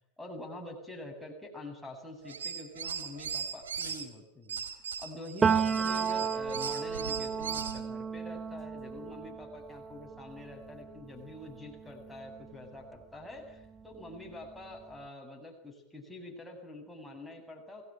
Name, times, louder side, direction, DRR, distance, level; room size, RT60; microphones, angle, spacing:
voice 1, 0.2-4.6 5.0-17.8, left 1 dB, 5° left, 0 dB, 8.0 m, -46 dB
sound 1, 2.2-4.0 4.5-7.8, right 6 dB, 65° right, 4.0 m, -38 dB
Piano, 5.4-13.0 13.4-14.9, right 6 dB, 15° right, 1.4 m, -34 dB
29.0 x 19.5 x 9.3 m, 0.80 s
figure-of-eight pair, 90°, 0 cm